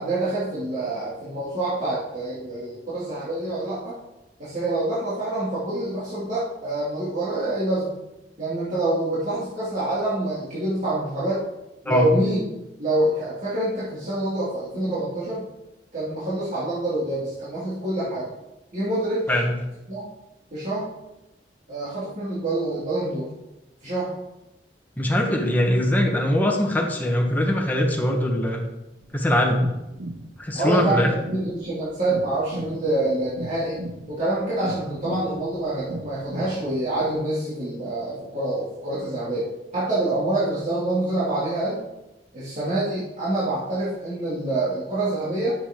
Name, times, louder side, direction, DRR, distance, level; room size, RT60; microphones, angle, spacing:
voice 1, 0.0-4.0 4.4-7.9 8.4-11.4 11.8-12.4 12.8-15.4 15.9-18.3 18.7-19.2 19.9-20.1 20.5-20.9 21.7-23.3 23.8-24.2 30.5-33.8 34.1-41.8 42.3-45.5, right 1 dB, 45° right, -10 dB, 2.7 m, -26 dB
voice 2, 25.0-28.7 29.1-29.6 30.4-31.1, left 1 dB, 10° left, 0 dB, 1.4 m, -22 dB
sound 1, 29.0-37.1, right 2 dB, 75° right, 0.8 m, -38 dB
11.0 x 7.3 x 3.8 m, 0.96 s
head